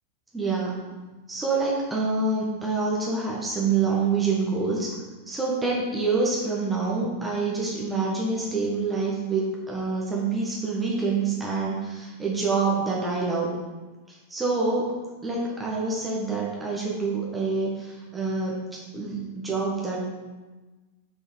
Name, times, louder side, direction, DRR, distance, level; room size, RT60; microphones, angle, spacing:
voice 1, 0.3-0.9 1.3-4.9 5.3-13.5 14.1-14.9 15.2-20.0, right 4 dB, 10° right, -4 dB, 1.6 m, -26 dB
6.0 x 5.2 x 6.3 m, 1.2 s
figure-of-eight pair, 90°, 0 cm